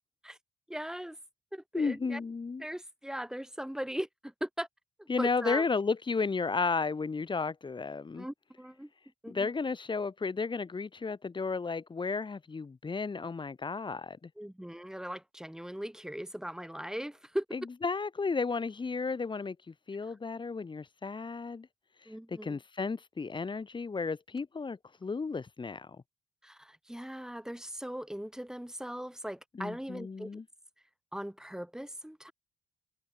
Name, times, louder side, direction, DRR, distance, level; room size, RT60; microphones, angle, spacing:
voice 1, 0.7-1.2 1.5-2.2 2.6-4.7 5.0-5.7 8.1-8.9 9.2-9.5 14.4-17.4 22.1-22.6 26.4-30.3 31.1-32.3, equal, 5° right, 4.5 m, -39 dB
voice 2, 1.7-2.6 5.1-8.3 9.3-14.3 17.5-21.7 22.0-26.0 29.6-30.4, left 4 dB, 25° left, 0.9 m, -33 dB
cardioid pair, 90°, 20 cm